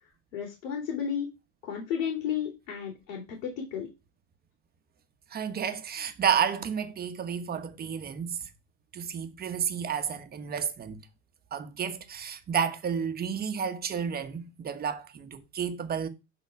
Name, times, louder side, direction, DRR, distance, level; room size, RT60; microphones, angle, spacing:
voice 1, 0.3-1.3 1.6-3.9, left 8 dB, 70° left, 3.1 m, -33 dB
voice 2, 5.3-8.5 8.9-11.0 11.5-16.1, right 7 dB, 25° right, 1.2 m, -31 dB
11.5 x 4.0 x 4.7 m
supercardioid pair, 125°, 38 cm